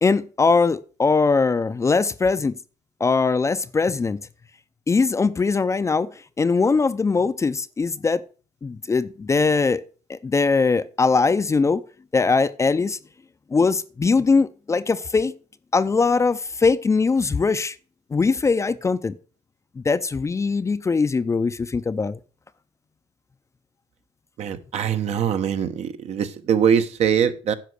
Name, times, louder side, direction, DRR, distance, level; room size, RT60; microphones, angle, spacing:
voice 1, 0.0-2.6 3.0-4.2 4.9-8.2 8.6-9.8 10.1-11.8 12.1-13.0 13.5-15.3 15.7-17.8 18.1-19.2 19.8-22.2, left 4 dB, 20° left, 0.6 m, -21 dB
voice 2, 24.4-27.5, right 8 dB, 55° right, 1.2 m, -22 dB
10.5 x 5.7 x 6.5 m
cardioid pair, 95°, 13 cm